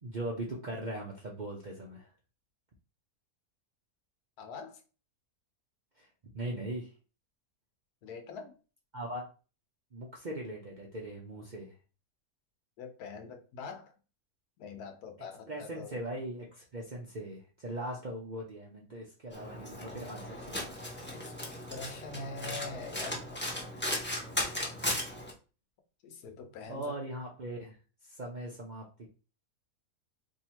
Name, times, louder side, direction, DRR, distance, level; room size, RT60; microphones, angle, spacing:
voice 1, 0.0-2.1 6.0-6.1 6.3-6.9 8.9-9.2 9.9-11.7 15.5-20.7 26.7-27.8 28.0-29.1, right 1 dB, 50° right, 0.5 m, -40 dB
voice 2, 4.4-4.8 8.0-8.5 12.8-13.9 14.6-16.0 21.1-21.3 21.7-23.2 26.0-27.0, left 4 dB, 80° left, 1.3 m, -43 dB
Domestic sounds home sounds, 19.3-25.3, left 1 dB, 10° left, 0.7 m, -37 dB
2.8 x 2.8 x 4.4 m
omnidirectional pair, 1.6 m